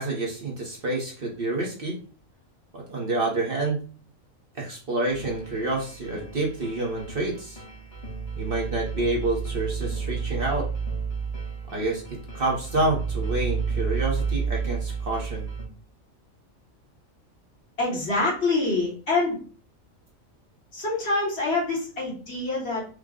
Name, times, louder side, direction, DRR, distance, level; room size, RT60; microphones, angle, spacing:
voice 1, 0.0-2.0 2.7-3.8 4.5-7.6 8.4-10.7 11.7-15.5, right 2 dB, 45° right, -1 dB, 1.0 m, -28 dB
sound 1, 5.1-15.6, right 5 dB, 30° left, 0.9 m, -31 dB
voice 2, 17.8-19.4 20.7-22.9, left 3 dB, 50° left, -5 dB, 1.9 m, -26 dB
4.8 x 2.2 x 3.6 m, 0.39 s
omnidirectional pair, 1.4 m